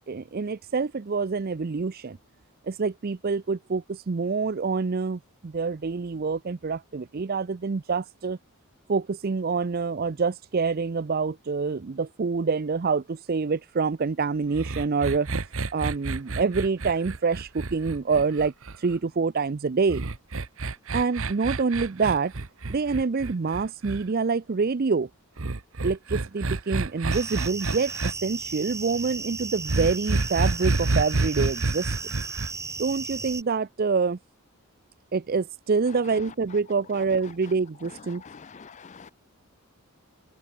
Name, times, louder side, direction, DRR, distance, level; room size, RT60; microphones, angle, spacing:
voice 1, 0.1-2.2 2.6-8.4 8.9-20.0 20.9-22.3 22.7-25.1 25.8-32.0 32.8-34.2 35.1-38.2, right 4 dB, 45° right, 0.5 m, -26 dB
sound 1, 14.5-19.0 19.9-24.0 25.4-28.1 29.7-32.5, right 3 dB, 60° right, 1.1 m, -29 dB
sound 2, 27.1-33.4, right 4 dB, 15° right, 2.1 m, -35 dB
voice 2, 38.2-39.1, left 5 dB, 30° left, 0.5 m, -46 dB
head